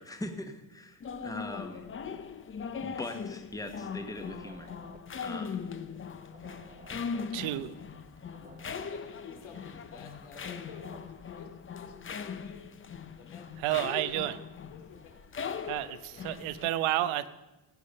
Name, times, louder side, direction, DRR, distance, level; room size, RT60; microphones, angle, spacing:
voice 1, 0.0-1.9 2.8-4.7 5.2-5.6, left 1 dB, 5° left, 6 dB, 1.2 m, -41 dB
sound 1, 1.0-16.7, left 6 dB, 25° left, 0.7 m, -40 dB
sound 2, 4.2-11.6, right 3 dB, 20° right, 1.1 m, -56 dB
voice 2, 7.3-7.7 13.6-14.4 15.7-17.4, right 14 dB, 85° right, 13 dB, 0.9 m, -30 dB
voice 3, 8.3-12.6 13.2-14.0 14.7-15.1 15.5-15.8, left 6 dB, 85° left, 2 dB, 3.1 m, -51 dB
17.0 x 8.5 x 5.4 m, 1.0 s
cardioid pair, 120°, 48 cm